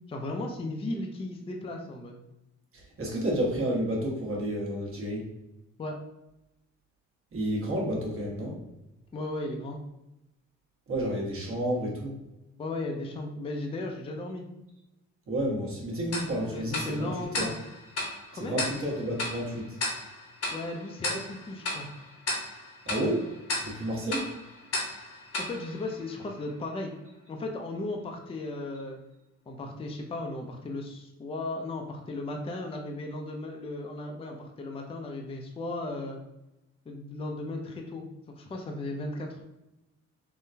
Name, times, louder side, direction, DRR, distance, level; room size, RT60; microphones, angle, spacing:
voice 1, 0.1-2.2 5.8-6.0 9.1-9.8 12.6-14.5 16.5-17.6 18.3-18.6 20.5-21.9 25.4-26.9 27.3-29.0 29.5-36.2 36.9-38.0 38.4-39.4, left 2 dB, 20° left, 2 dB, 0.4 m, -36 dB
voice 2, 2.7-5.3 7.3-8.6 10.9-12.1 15.3-17.5 18.3-19.8 22.8-23.2 23.6-24.3, right 1 dB, 45° right, -3 dB, 1.2 m, -30 dB
Tick-tock, 16.1-26.6, left 2 dB, 55° left, 0.9 m, -36 dB
3.7 x 2.2 x 2.6 m, 0.91 s
cardioid pair, 90°, 30 cm